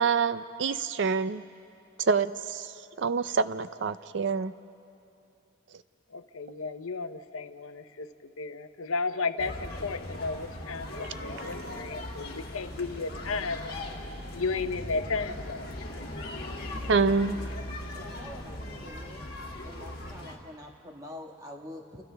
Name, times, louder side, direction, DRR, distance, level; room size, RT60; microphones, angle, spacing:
voice 1, 0.0-1.4 2.0-2.7 3.0-4.5 16.9-17.4, right 5 dB, 55° right, 13 dB, 0.4 m, -26 dB
voice 2, 6.1-13.8 14.3-15.7 16.0-16.1, left 4 dB, 80° left, 10 dB, 0.8 m, -34 dB
sound 1, 9.4-20.4, left 1 dB, 45° left, 2.2 m, -39 dB
voice 3, 17.9-19.3 19.6-22.0, left 1 dB, 15° right, 1 dB, 1.5 m, -45 dB
30.0 x 29.0 x 3.4 m, 2.6 s
head